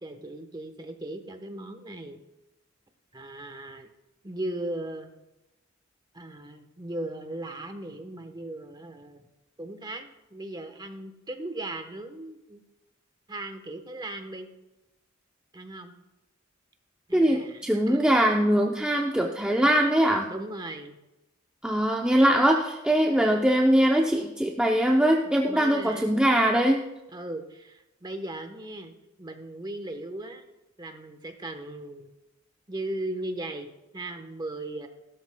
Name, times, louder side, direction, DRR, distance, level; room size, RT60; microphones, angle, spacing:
voice 1, 0.0-2.2 3.1-3.9 4.2-5.2 6.1-9.3 9.6-12.6 13.3-14.5 15.5-15.9 17.1-18.1 20.3-21.0 25.2-26.2 27.1-28.9 29.2-30.4 30.8-32.1 32.7-34.9, right 1 dB, 20° right, 6 dB, 1.0 m, -37 dB
voice 2, 17.1-20.3 21.6-26.8, right 1 dB, 5° right, 0 dB, 0.6 m, -22 dB
16.5 x 12.5 x 2.2 m, 0.98 s
head